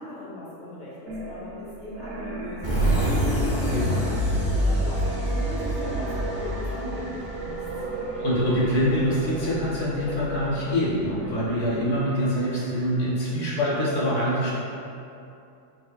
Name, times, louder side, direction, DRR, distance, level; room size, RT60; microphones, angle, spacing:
voice 1, 0.0-3.1 3.4-7.6, equal, 40° left, -6 dB, 0.8 m, -38 dB
sound 1, 1.1-13.3, right 2 dB, 60° right, 0.7 m, -36 dB
sound 2, 2.6-8.1, equal, 20° left, 0.4 m, -25 dB
voice 2, 3.6-4.0 8.1-14.5, equal, 65° left, -7 dB, 1.0 m, -25 dB
4.4 x 3.2 x 2.2 m, 2.7 s
omnidirectional pair, 1.4 m